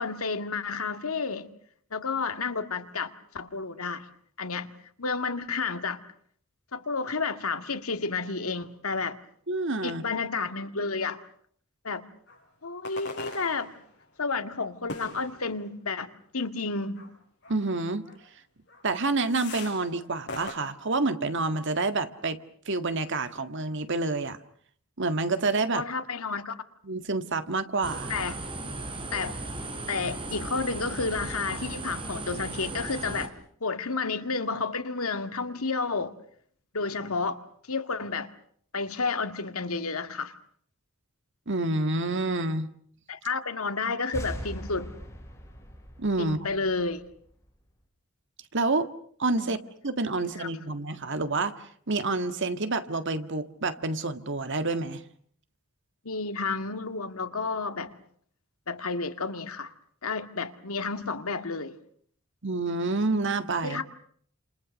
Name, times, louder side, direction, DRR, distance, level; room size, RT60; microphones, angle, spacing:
voice 1, 0.0-1.5 1.9-4.1 4.4-4.7 5.0-6.0 6.7-9.2 9.8-11.2 11.8-12.0 12.6-13.7 14.2-17.1 25.7-26.5 28.1-28.4 29.1-29.4 29.9-33.3 33.6-36.1 36.7-37.4 37.7-38.3 38.7-40.3 43.1-44.9 46.2-47.0 49.4-49.6 50.4-50.5 56.0-57.9 58.7-59.7 60.0-61.7 63.6-63.8, left 4 dB, 85° left, 2.0 m, -31 dB
voice 2, 9.5-10.0 17.5-18.0 18.8-22.4 22.6-24.4 25.0-25.8 26.8-28.1 41.5-42.7 46.0-46.5 48.5-48.9 49.2-49.6 49.8-51.5 51.9-55.0 62.4-63.8, right 3 dB, 60° right, 1.8 m, -28 dB
sound 1, 12.3-12.4 12.8-14.0 14.9-15.7 17.0-17.1 17.4-17.6 18.1-18.2 18.7-18.8 19.2-19.9 20.3-20.6, left 2 dB, 55° left, 6.9 m, -41 dB
sound 2, 27.8-33.3, right 2 dB, 25° right, 4.3 m, -36 dB
sound 3, 44.1-47.6, equal, 15° left, 6.9 m, -40 dB
30.0 x 28.0 x 6.4 m
head